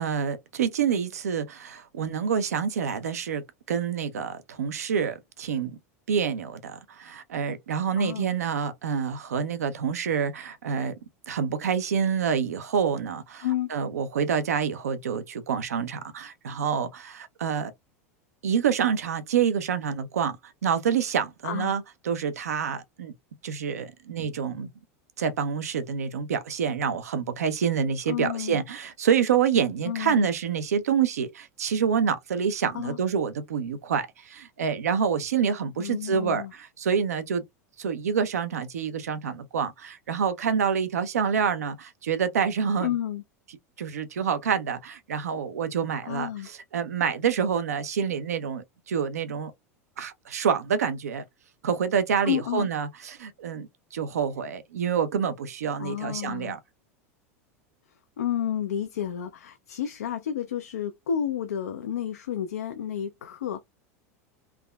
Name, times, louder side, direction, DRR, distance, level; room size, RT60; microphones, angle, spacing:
voice 1, 0.0-5.8 6.1-10.9 11.3-17.7 18.4-23.1 23.4-24.7 25.2-37.4 37.8-42.9 43.8-49.5 50.0-51.2 51.6-56.6, right 7 dB, 90° right, 0.5 m, -27 dB
voice 2, 8.0-8.4 13.4-13.7 21.4-21.7 28.1-28.6 29.8-30.3 32.7-33.0 35.8-36.5 42.8-43.2 46.0-46.5 52.2-52.7 55.8-56.6 58.2-63.6, left 10 dB, 90° left, 0.4 m, -31 dB
3.4 x 2.0 x 2.2 m
hypercardioid pair, 100°, 8 cm